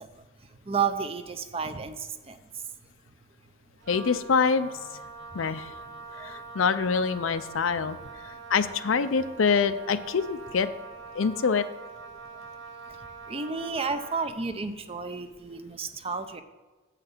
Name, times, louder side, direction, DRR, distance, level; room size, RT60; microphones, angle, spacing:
voice 1, 0.7-2.4 6.2-6.3 13.3-16.4, right 5 dB, 30° right, 9 dB, 0.6 m, -31 dB
Wind instrument woodwind instrument, 3.8-14.4, right 4 dB, 65° right, 1.0 m, -44 dB
voice 2, 3.9-4.9 5.3-5.7 6.2-8.0 8.2-10.7 11.1-11.6, left 5 dB, 75° left, 12 dB, 0.5 m, -25 dB
8.0 x 5.8 x 6.7 m, 1.2 s
head